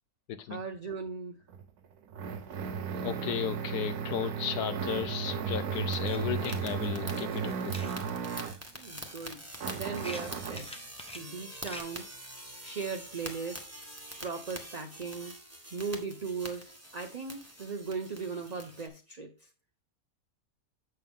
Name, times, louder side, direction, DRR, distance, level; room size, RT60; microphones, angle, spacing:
voice 1, 0.5-1.4 8.7-10.8 11.1-12.1 12.6-13.6 14.2-15.4 15.7-19.5, right 5 dB, 40° right, 0.6 m, -38 dB
sound 1, 1.5-8.7 9.6-10.7, right 6 dB, 80° right, 1.3 m, -35 dB
voice 2, 3.0-7.9, left 9 dB, 85° left, 1.2 m, -35 dB
sound 2, 5.2-5.3 5.7-8.1 8.5-11.8, left 1 dB, 5° left, 0.7 m, -47 dB
sound 3, 5.9-18.9, right 1 dB, 10° right, 1.2 m, -46 dB
7.7 x 6.6 x 3.6 m
omnidirectional pair, 1.6 m